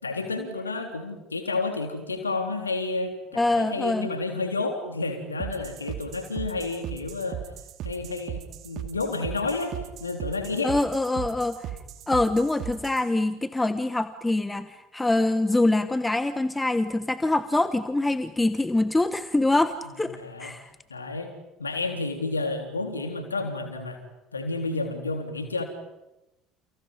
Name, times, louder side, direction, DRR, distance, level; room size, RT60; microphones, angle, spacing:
voice 1, 0.0-7.4 7.8-10.8 20.0-20.6 20.9-21.3 21.6-24.0 24.3-25.6, left 3 dB, 80° left, 6 dB, 3.4 m, -30 dB
voice 2, 3.4-4.1 10.6-11.7 12.1-20.7, left 2 dB, 10° left, 12 dB, 1.3 m, -24 dB
sound 1, 5.4-13.1, right 12 dB, 50° right, 2.4 m, -37 dB
30.0 x 30.0 x 5.4 m, 0.96 s
figure-of-eight pair, 60°, 0 cm